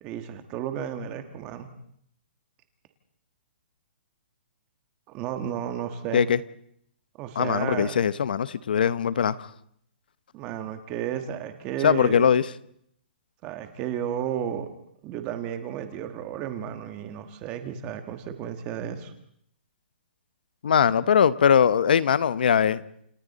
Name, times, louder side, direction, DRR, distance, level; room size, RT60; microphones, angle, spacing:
voice 1, 0.0-1.7 5.1-6.3 7.2-8.0 10.3-12.3 13.4-14.7 15.0-19.1, right 9 dB, 15° right, 8 dB, 1.4 m, -33 dB
voice 2, 7.4-9.4 11.8-12.4 20.6-22.8, left 8 dB, 55° left, 16 dB, 0.9 m, -21 dB
29.0 x 28.5 x 4.2 m, 0.70 s
hypercardioid pair, 175°, 6 cm